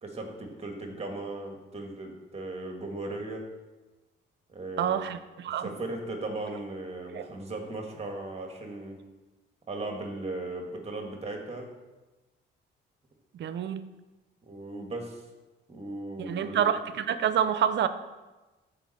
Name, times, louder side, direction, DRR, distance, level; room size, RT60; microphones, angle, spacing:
voice 1, 0.0-3.4 4.5-5.1 5.6-9.0 9.7-11.7 14.5-15.2 15.7-16.7, right 2 dB, 30° right, 2 dB, 1.9 m, -37 dB
voice 2, 4.8-5.7 7.1-7.3 13.3-13.8 16.2-17.9, right 9 dB, 65° right, 12 dB, 0.7 m, -27 dB
13.5 x 5.3 x 4.3 m, 1.2 s
cardioid pair, 90°, 20 cm